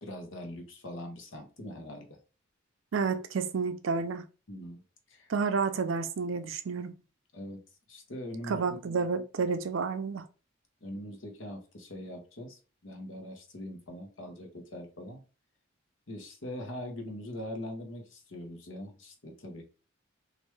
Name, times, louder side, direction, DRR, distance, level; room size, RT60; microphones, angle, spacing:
voice 1, 0.0-2.2 4.5-4.8 5.1-5.3 7.3-7.6 7.9-8.6 10.8-15.2 16.1-19.6, left 1 dB, 70° left, 0.9 m, -42 dB
voice 2, 2.9-4.2 5.3-6.9 8.5-10.3, right 5 dB, 70° right, 0.4 m, -30 dB
3.2 x 2.5 x 3.1 m
head